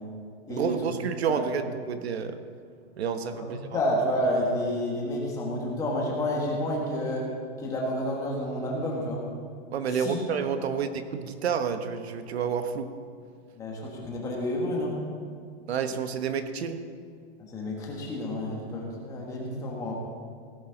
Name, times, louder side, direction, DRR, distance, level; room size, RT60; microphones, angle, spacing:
voice 1, 0.5-2.4 3.0-3.8 9.7-12.9 15.7-16.9, right 7 dB, 70° right, 9 dB, 1.1 m, -30 dB
voice 2, 3.4-7.3 7.6-9.2 9.9-10.2 13.6-15.0 17.5-19.9, left 1 dB, 10° left, -2 dB, 1.4 m, -30 dB
17.0 x 11.5 x 3.9 m, 2.2 s
hypercardioid pair, 175°, 33 cm